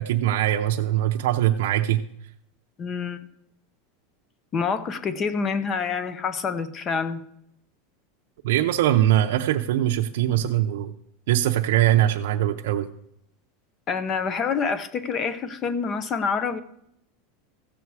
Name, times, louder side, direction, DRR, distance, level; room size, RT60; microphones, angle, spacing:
voice 1, 0.0-2.0 8.4-10.9 11.3-12.9, right 12 dB, 75° right, 2 dB, 0.6 m, -22 dB
voice 2, 2.8-3.3 4.5-7.2 13.9-16.6, left 5 dB, 25° left, 14 dB, 0.7 m, -27 dB
15.0 x 7.0 x 4.7 m, 0.75 s
supercardioid pair, 165°, 0 cm